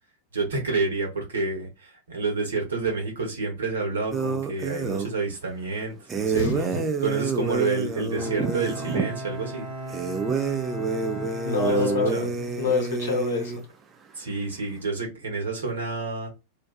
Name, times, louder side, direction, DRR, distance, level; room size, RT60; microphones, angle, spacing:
voice 1, 0.3-6.5 7.0-9.7 11.6-12.3 14.1-16.3, right 3 dB, 65° right, 1.1 m, -29 dB
sound 1, 4.1-5.1 6.1-9.1 9.9-13.6, right 5 dB, 20° right, 0.4 m, -28 dB
voice 2, 6.3-6.9 11.4-12.2 12.6-13.6, left 4 dB, 60° left, 0.7 m, -26 dB
Bowed string instrument, 8.1-13.0, right 1 dB, 40° right, 1.1 m, -37 dB
2.5 x 2.3 x 2.3 m
figure-of-eight pair, 90°, 0 cm